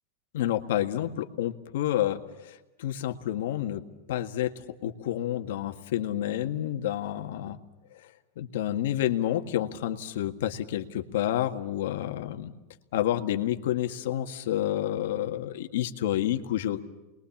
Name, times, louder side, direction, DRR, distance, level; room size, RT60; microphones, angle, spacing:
voice 1, 0.3-3.8 4.1-4.5 4.8-7.6 8.4-12.5 12.9-16.8, left 12 dB, 75° left, 7 dB, 1.8 m, -29 dB
29.0 x 21.5 x 7.3 m, 1.1 s
supercardioid pair, 150°, 0 cm